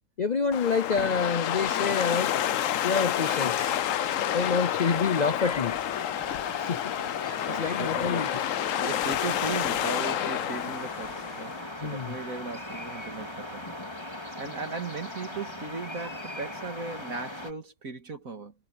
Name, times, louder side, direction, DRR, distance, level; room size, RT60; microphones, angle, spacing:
voice 1, 0.2-2.4 2.8-3.7 4.3-5.8 6.6-6.9 7.2-8.3 11.8-12.1, left 5 dB, 85° left, 0.3 m, -28 dB
sound 1, 0.5-11.7, left 11 dB, 65° left, 0.9 m, -29 dB
sound 2, 2.2-17.5, left 1 dB, 15° left, 2.9 m, -40 dB
voice 2, 7.3-8.4 8.7-13.7 14.4-18.5, right 4 dB, 55° right, 2.6 m, -37 dB
omnidirectional pair, 1.7 m